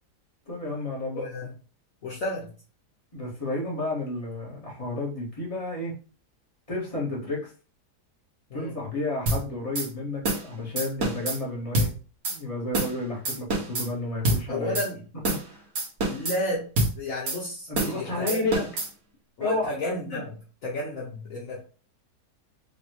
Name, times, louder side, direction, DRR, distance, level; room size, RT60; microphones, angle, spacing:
voice 1, 0.5-1.3 3.1-5.9 6.7-7.5 8.5-11.9 12.3-14.8 15.4-15.6 17.7-18.6 19.4-19.6, left 2 dB, 20° left, -4 dB, 1.9 m, -31 dB
voice 2, 1.1-1.5 2.0-2.5 8.5-8.7 14.5-15.0 16.0-16.7 17.0-18.6 19.4-20.4 20.6-21.6, left 1 dB, 60° left, -4 dB, 1.3 m, -32 dB
sound 1, 9.3-9.4 9.7-9.9 10.2-10.5 10.8-11.4 11.7-11.9 12.2-12.4 12.7-13.0 13.2-13.9 14.2-14.4 14.7-14.9 15.2-15.5 15.7-16.4 16.8-16.9 17.3-17.4 17.7-18.0 18.3-18.9, right 2 dB, 60° right, 1.6 m, -26 dB
5.0 x 3.0 x 3.1 m, 0.36 s
omnidirectional pair, 1.7 m